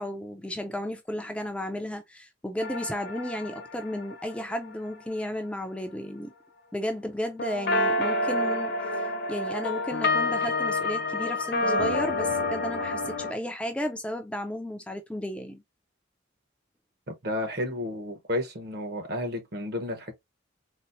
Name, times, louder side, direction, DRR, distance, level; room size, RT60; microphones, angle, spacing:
voice 1, 0.0-6.3 6.7-15.6, left 1 dB, 5° left, 0.3 m, -33 dB
sound 1, 2.6-4.7 7.4-13.3, left 2 dB, 55° left, 0.7 m, -28 dB
voice 2, 17.1-20.1, left 1 dB, 55° right, 1.0 m, -32 dB
4.1 x 2.0 x 2.6 m
head